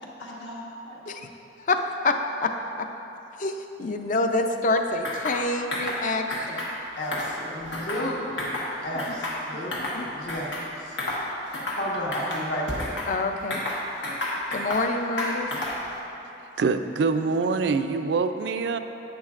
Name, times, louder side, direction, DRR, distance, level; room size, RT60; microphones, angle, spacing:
voice 1, 0.0-1.2 7.0-10.9 11.8-12.9, equal, 70° left, -4 dB, 1.4 m, -33 dB
voice 2, 1.6-2.5 2.8-2.9 3.4-6.8 9.5-9.6 9.9-10.1 13.1-13.6 14.5-15.5, left 2 dB, 45° left, 6 dB, 0.5 m, -27 dB
sound 1, 5.0-5.4 5.7-6.0 6.3-6.7 7.0-8.1 8.4-8.7 9.0-10.0 10.3-10.7 11.0-11.2 11.5-11.8 12.1-13.1 13.5-14.9 15.2-15.9, left 1 dB, 85° left, 1.5 m, -31 dB
voice 3, 16.6-18.8, right 4 dB, 65° right, 9 dB, 0.4 m, -24 dB
10.5 x 8.8 x 2.5 m, 2.9 s
head